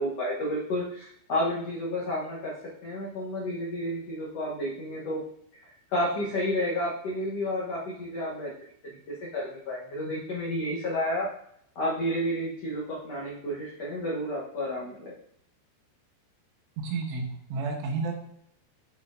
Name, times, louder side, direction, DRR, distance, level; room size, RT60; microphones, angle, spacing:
voice 1, 0.0-2.5 2.8-5.2 5.9-8.5 9.1-11.3 11.7-15.1, left 1 dB, 80° left, -5 dB, 1.4 m, -31 dB
voice 2, 16.8-17.2 17.5-18.1, right 4 dB, 85° right, 2 dB, 3.2 m, -30 dB
8.0 x 5.8 x 2.6 m, 0.70 s
omnidirectional pair, 4.8 m